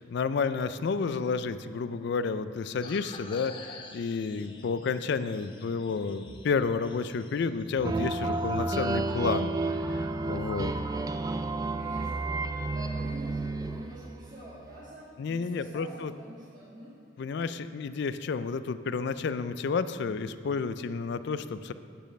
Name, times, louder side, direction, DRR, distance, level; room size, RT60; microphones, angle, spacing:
voice 1, 0.0-9.5 9.9-10.7 15.2-16.1 17.2-21.7, left 5 dB, 60° left, 12 dB, 0.3 m, -31 dB
sound 1, 2.8-9.2, left 3 dB, 25° left, 0.6 m, -49 dB
sound 2, 7.8-14.4, right 2 dB, 20° right, 0.3 m, -31 dB
voice 2, 11.8-16.9, right 1 dB, 40° right, -10 dB, 1.8 m, -47 dB
8.9 x 5.2 x 7.4 m, 2.5 s
head